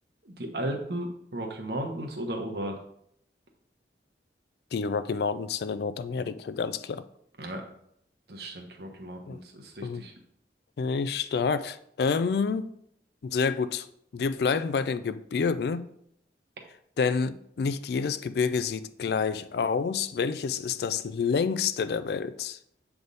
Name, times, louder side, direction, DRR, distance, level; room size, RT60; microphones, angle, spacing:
voice 1, 0.2-2.8 7.4-7.6 8.3-10.1, right 1 dB, 65° right, 1.1 m, -35 dB
voice 2, 4.7-7.0 9.3-9.4 9.8-10.0 10.8-12.7 13.2-13.9 14.1-15.9 17.0-22.6, left 5 dB, 65° left, 0.3 m, -28 dB
7.8 x 3.5 x 4.0 m
head